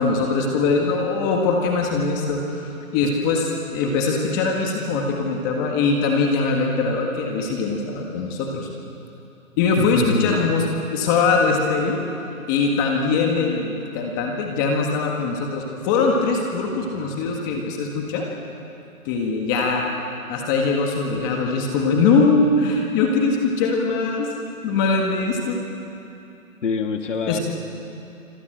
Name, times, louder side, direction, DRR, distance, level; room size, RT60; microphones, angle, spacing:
voice 1, 0.0-3.5 3.7-8.7 9.6-12.0 12.5-18.3 19.0-19.8 20.3-24.3 24.6-25.6 27.3-27.4, left 4 dB, 15° left, 1 dB, 1.7 m, -22 dB
voice 2, 9.8-10.5 26.6-27.4, left 4 dB, 55° left, 4 dB, 2.6 m, -25 dB
26.0 x 26.0 x 7.9 m, 3.0 s
hypercardioid pair, 160°, 43 cm